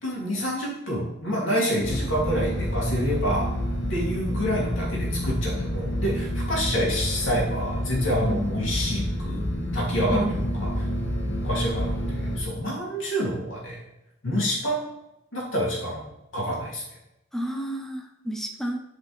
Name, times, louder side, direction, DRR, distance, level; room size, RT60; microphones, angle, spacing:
voice 1, 0.0-3.5 3.9-9.4 9.7-10.7 11.4-13.8 14.2-14.9 15.3-16.1 16.3-16.8, equal, 85° left, -4 dB, 2.7 m, -27 dB
sound 1, 1.8-12.4, equal, 55° left, 1.1 m, -28 dB
voice 2, 10.1-10.7 17.3-18.8, equal, ahead, 2 dB, 0.7 m, -31 dB
8.0 x 5.1 x 3.3 m, 0.89 s
head